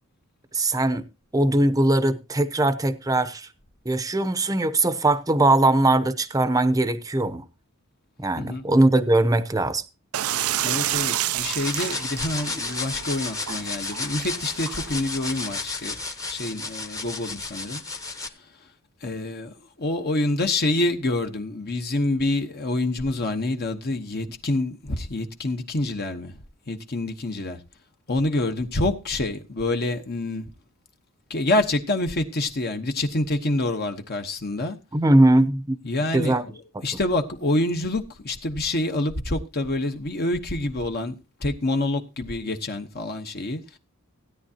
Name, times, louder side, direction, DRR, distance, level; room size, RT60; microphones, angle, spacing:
voice 1, 0.5-1.1 1.3-3.5 3.8-7.4 8.2-9.8 34.9-35.8 36.1-36.4, right 2 dB, 15° right, 0.8 m, -20 dB
sound 1, 10.1-15.6, right 12 dB, 80° right, 0.5 m, -30 dB
voice 2, 10.6-16.0 16.3-17.8 18.1-18.3 19.0-26.4 26.7-27.6 28.1-30.5 31.3-34.8 35.8-43.8, left 2 dB, 50° left, 1.1 m, -27 dB
sound 2, 11.6-18.3, left 3 dB, 15° left, 1.0 m, -32 dB
16.0 x 9.8 x 2.8 m
head